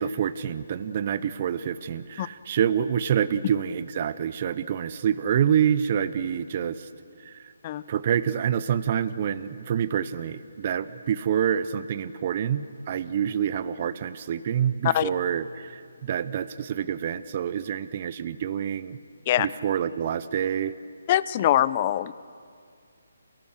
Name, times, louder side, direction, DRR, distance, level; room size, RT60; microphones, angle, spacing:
voice 1, 0.0-6.9 7.2-7.5 7.9-19.0 19.4-20.8, right 9 dB, 40° right, 14 dB, 0.7 m, -27 dB
voice 2, 21.1-22.1, left 12 dB, 30° left, 17 dB, 0.6 m, -23 dB
28.5 x 18.0 x 6.6 m, 2.2 s
hypercardioid pair, 160°, 0 cm